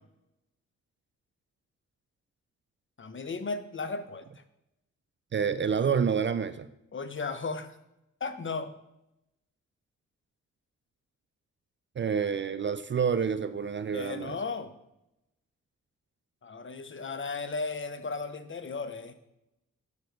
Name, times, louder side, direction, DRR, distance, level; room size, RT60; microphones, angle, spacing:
voice 1, 3.0-4.2 6.9-7.8 8.2-8.7 13.9-14.7 16.4-19.1, left 4 dB, 35° left, 10 dB, 0.8 m, -35 dB
voice 2, 5.3-6.7 12.0-14.4, right 6 dB, 35° right, 12 dB, 0.4 m, -28 dB
6.9 x 5.1 x 4.6 m, 0.86 s
supercardioid pair, 50°, 32 cm